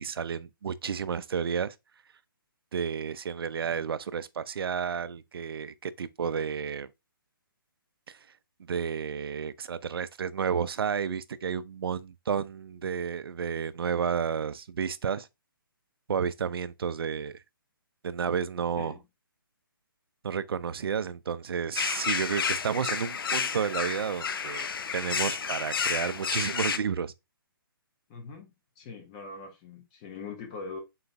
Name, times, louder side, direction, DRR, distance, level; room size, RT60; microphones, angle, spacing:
voice 1, 0.0-1.7 2.7-6.9 8.1-8.2 8.7-15.3 16.1-17.4 18.0-19.0 20.2-24.7 24.9-27.1, right 7 dB, 85° right, 0.4 m, -31 dB
sound 1, 21.8-26.8, left 6 dB, 70° left, 0.5 m, -31 dB
voice 2, 28.1-28.5 28.8-30.8, left 4 dB, 15° left, 0.5 m, -42 dB
3.9 x 2.2 x 3.9 m
hypercardioid pair, 165°, 12 cm